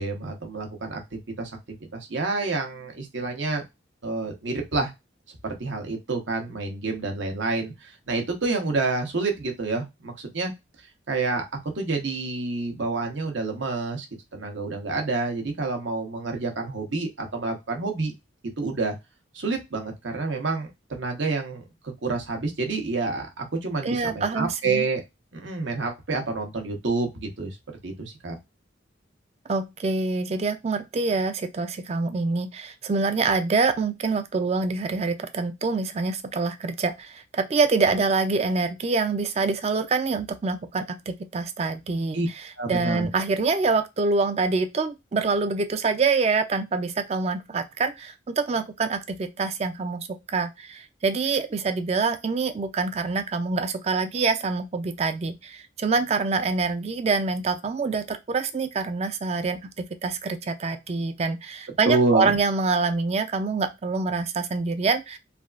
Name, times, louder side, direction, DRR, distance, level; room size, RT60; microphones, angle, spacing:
voice 1, 0.0-3.6 4.0-4.9 5.4-10.5 11.1-14.1 14.3-18.1 18.6-18.9 19.3-21.6 22.0-25.0 25.3-27.6 27.8-28.4 42.1-42.3 42.6-43.1 61.8-62.4, right 3 dB, 75° right, 0.9 m, -28 dB
voice 2, 23.8-24.8 29.5-42.2 42.7-65.2, right 4 dB, 35° right, 0.3 m, -26 dB
3.3 x 2.4 x 2.3 m
head